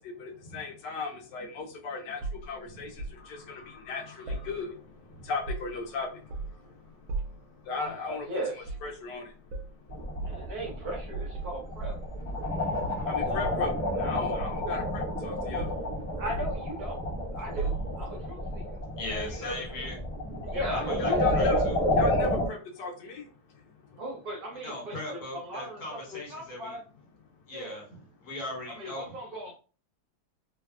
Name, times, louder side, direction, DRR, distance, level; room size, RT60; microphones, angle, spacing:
voice 1, 0.0-6.3 6.6-6.8 7.6-8.3 8.8-9.3 13.1-15.7 19.1-19.5 20.6-20.7 21.2-21.5 22.0-23.3, left 3 dB, 70° left, 1 dB, 1.1 m, -36 dB
sound 1, 2.2-3.2 4.3-5.0 5.3-5.9 6.3-6.7 7.1-7.5 8.6-8.9 9.5-9.7 10.2-10.4 11.1-12.5 12.8-13.8 14.4-15.3 15.6-15.9 16.3-17.1 17.6-18.2 19.1-19.3, right 3 dB, 80° right, 1.3 m, -37 dB
voice 2, 7.7-8.8 10.2-12.0 12.9-13.6 16.1-17.0 17.3-18.8 20.4-21.7 24.0-26.8 27.5-27.8 28.7-29.5, right 1 dB, 60° right, -2 dB, 1.1 m, -38 dB
sound 2, 9.9-22.5, left 1 dB, 25° left, 1.1 m, -30 dB
voice 3, 19.0-20.0 20.7-21.8 24.6-26.8 27.5-29.1, left 1 dB, 55° left, -3 dB, 1.7 m, -39 dB
3.3 x 2.2 x 2.3 m, 0.37 s
omnidirectional pair, 2.2 m